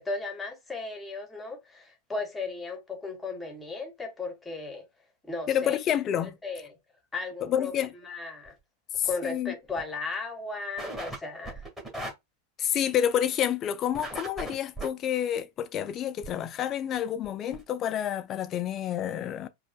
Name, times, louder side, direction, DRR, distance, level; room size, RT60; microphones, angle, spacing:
voice 1, 0.0-4.9 5.2-5.8 6.2-6.8 7.1-8.5 9.0-11.6, left 3 dB, 10° left, 1.1 m, -36 dB
voice 2, 5.5-6.3 7.4-7.9 9.0-9.5 12.6-19.5, left 10 dB, 30° left, 0.4 m, -29 dB
sound 1, 8.5-8.6 9.0-9.3 9.7-9.8 10.1-10.2 10.8-11.2 11.4-12.1 13.9-14.9 16.2-16.3 16.9-17.0 17.2-17.3 17.5-17.6, right 1 dB, 10° right, 1.7 m, -37 dB
5.1 x 2.3 x 2.2 m
figure-of-eight pair, 90°, 0 cm